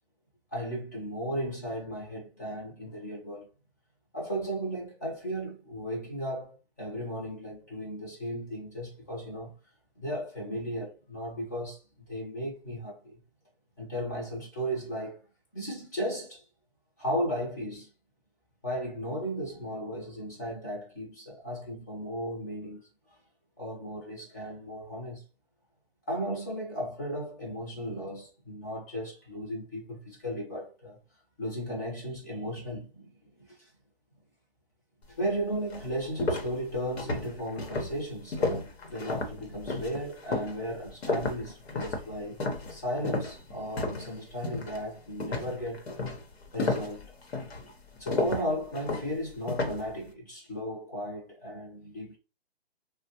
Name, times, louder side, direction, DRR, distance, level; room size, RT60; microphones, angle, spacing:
voice 1, 0.5-3.5 4.1-9.5 10.0-13.1 13.8-15.2 15.5-16.4 17.0-17.9 18.6-22.9 23.6-25.2 26.1-31.0 31.4-33.1 33.5-33.7 35.1-42.4 42.7-45.8 46.5-47.1 48.0-52.2, equal, 20° left, 0.7 m, -35 dB
sound 1, 35.2-35.3 35.7-44.1 44.4-44.8 45.2-49.9, left 2 dB, 85° left, 1.1 m, -32 dB
3.3 x 2.2 x 2.9 m
hypercardioid pair, 175°, 30 cm